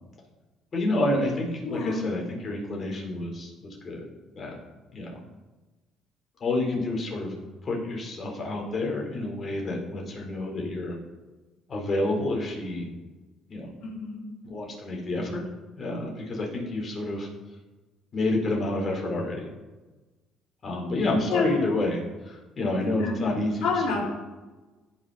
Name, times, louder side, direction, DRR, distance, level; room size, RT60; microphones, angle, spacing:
voice 1, 0.7-4.0 4.4-4.5 4.9-5.1 6.4-7.3 7.6-11.0 11.7-12.9 13.5-13.7 14.4-15.4 15.8-17.3 18.1-19.5 20.6-22.0 22.2-24.0, left 2 dB, 45° left, -1 dB, 4.0 m, -29 dB
voice 2, 1.6-2.1 13.8-14.2 21.3-21.6 22.8-23.2 23.6-24.0, left 4 dB, 70° left, -3 dB, 3.8 m, -29 dB
17.0 x 6.1 x 4.2 m, 1.2 s
supercardioid pair, 65°, 0 cm